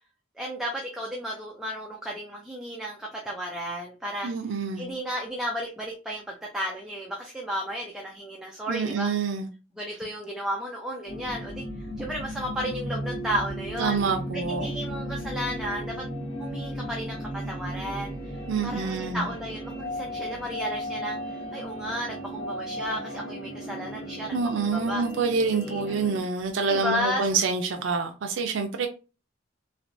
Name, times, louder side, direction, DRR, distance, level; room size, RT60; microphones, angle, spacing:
voice 1, 0.4-4.3 4.8-9.1 9.8-14.0 14.5-16.0 16.4-25.0 25.6-26.0 26.7-27.3, equal, 5° right, 0.4 m, -33 dB
voice 2, 4.2-4.9 8.7-9.5 13.8-14.8 18.5-19.3 24.3-28.9, right 4 dB, 80° right, 0.4 m, -27 dB
sound 1, 11.1-26.2, equal, 75° left, 1.7 m, -35 dB
3.3 x 2.9 x 2.5 m
head